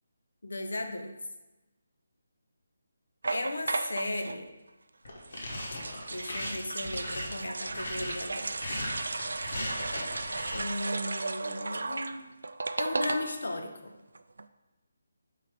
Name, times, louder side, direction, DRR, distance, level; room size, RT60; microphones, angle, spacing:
voice 1, 0.4-1.1 3.3-4.5 6.1-8.6 10.5-12.3 12.8-13.9, left 2 dB, 90° left, 5 dB, 0.8 m, -36 dB
Liquid Pouring, 3.2-4.4 5.2-13.6 13.9-14.0 14.2-14.5, right 3 dB, 75° right, 0.3 m, -35 dB
sound 1, 5.0-10.6, left 1 dB, 45° left, 1.3 m, -38 dB
6.5 x 2.9 x 5.1 m, 1.1 s
hypercardioid pair, 180°, 0 cm